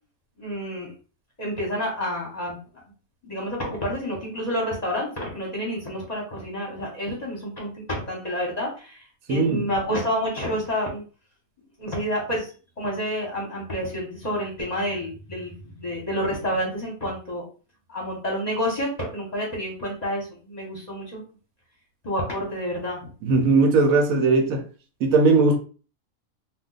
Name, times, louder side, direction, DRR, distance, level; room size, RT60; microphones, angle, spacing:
voice 1, 0.4-0.9 1.4-2.8 3.2-11.0 11.8-12.5 12.8-17.4 17.9-21.2 22.0-23.1, equal, 35° left, 0.8 m, -29 dB
voice 2, 9.3-9.7 23.3-24.6 25.0-25.6, right 3 dB, 80° right, 1.0 m, -18 dB
2.3 x 2.2 x 3.8 m
omnidirectional pair, 1.5 m